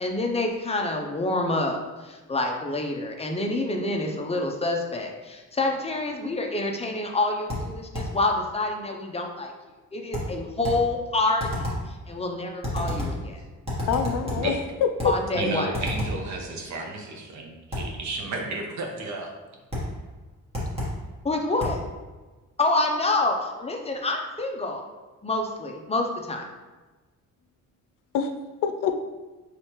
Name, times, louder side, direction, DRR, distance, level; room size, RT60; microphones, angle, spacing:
voice 1, 0.0-9.5 9.9-13.4 15.0-15.8 21.2-21.8 22.6-24.9 25.2-26.5, left 2 dB, 20° left, 2 dB, 0.5 m, -27 dB
sound 1, 7.5-8.2 10.1-10.9 11.4-11.9 12.6-13.3 13.7-14.5 15.0-15.3 15.7-16.3 17.7-18.0 19.7-20.0 20.5-21.0 21.6-21.9, left 1 dB, 20° right, 1.5 m, -30 dB
voice 2, 13.9-15.1 28.1-28.3 28.6-28.9, left 7 dB, 85° left, 7 dB, 0.5 m, -25 dB
voice 3, 15.3-19.3, right 3 dB, 65° right, 1 dB, 0.9 m, -32 dB
4.9 x 3.2 x 3.0 m, 1.2 s
cardioid pair, 125°, 31 cm